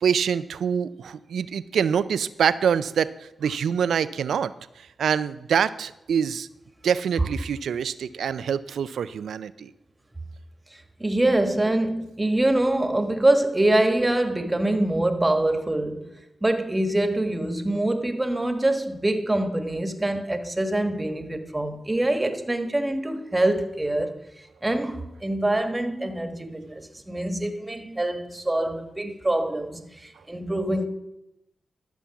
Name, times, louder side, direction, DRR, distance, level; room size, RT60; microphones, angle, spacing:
voice 1, 0.0-4.5 5.0-6.5 6.8-9.7, right 7 dB, 85° right, 0.4 m, -25 dB
voice 2, 10.7-16.1 16.4-30.9, right 1 dB, 20° right, 1.4 m, -25 dB
12.5 x 7.0 x 5.9 m
cardioid pair, 60°, 0 cm